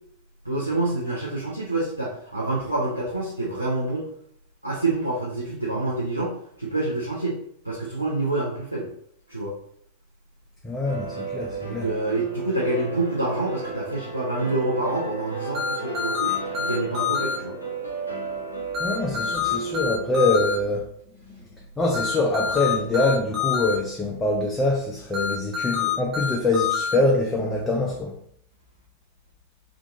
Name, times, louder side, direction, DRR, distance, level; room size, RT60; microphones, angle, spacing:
voice 1, 0.5-4.1 4.6-7.4 7.6-8.9 9.3-9.5 11.6-17.6, right 2 dB, 90° right, -6 dB, 0.5 m, -27 dB
voice 2, 10.6-11.9 18.8-20.9 21.8-28.2, left 2 dB, 15° left, -1 dB, 0.4 m, -24 dB
sound 1, 10.8-20.8, right 4 dB, 85° left, 0.6 m, -34 dB
sound 2, 15.5-17.4 18.7-20.6 21.9-23.7 25.1-26.9, left 7 dB, 30° right, 0.8 m, -26 dB
2.5 x 2.4 x 2.8 m, 0.68 s
figure-of-eight pair, 90°, 0 cm